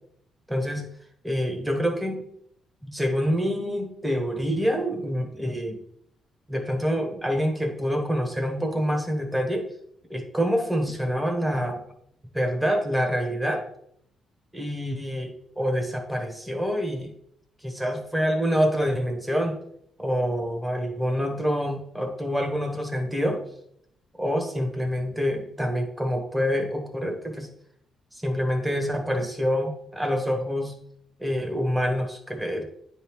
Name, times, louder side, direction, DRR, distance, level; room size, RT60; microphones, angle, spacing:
voice 1, 0.5-0.9 1.2-2.2 2.8-5.8 6.5-9.7 10.1-11.8 12.3-13.6 14.5-17.1 17.6-19.6 20.0-23.4 24.2-27.5 28.1-30.7 31.2-32.6, equal, 5° right, 3 dB, 1.2 m, -26 dB
9.4 x 3.5 x 3.1 m, 0.72 s
cardioid pair, 90°, 0 cm